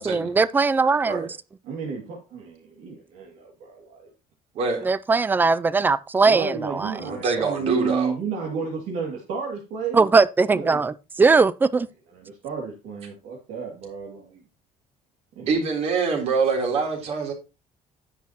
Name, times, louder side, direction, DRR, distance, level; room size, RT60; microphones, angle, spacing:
voice 1, 0.0-1.4 4.8-6.9 9.9-11.9, right 4 dB, 15° right, 0.3 m, -20 dB
voice 2, 1.6-4.1 6.2-10.0 10.5-10.8 12.1-14.4 15.4-15.5, right 5 dB, 75° right, 2.4 m, -32 dB
voice 3, 4.5-4.9 7.0-8.1 15.5-17.3, right 4 dB, 50° right, 3.5 m, -25 dB
10.0 x 8.4 x 2.9 m
cardioid pair, 170°, 13 cm